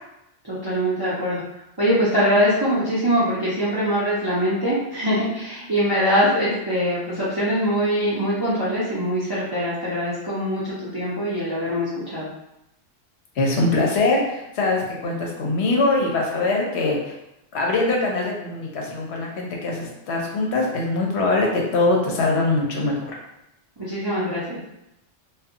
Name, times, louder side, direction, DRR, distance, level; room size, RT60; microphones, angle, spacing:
voice 1, 0.4-1.4 1.8-12.3 23.8-24.6, equal, 30° right, -9 dB, 0.4 m, -23 dB
voice 2, 13.4-17.1 17.5-22.9, left 2 dB, 65° left, -1 dB, 0.8 m, -22 dB
2.7 x 2.2 x 2.5 m, 0.87 s
omnidirectional pair, 1.3 m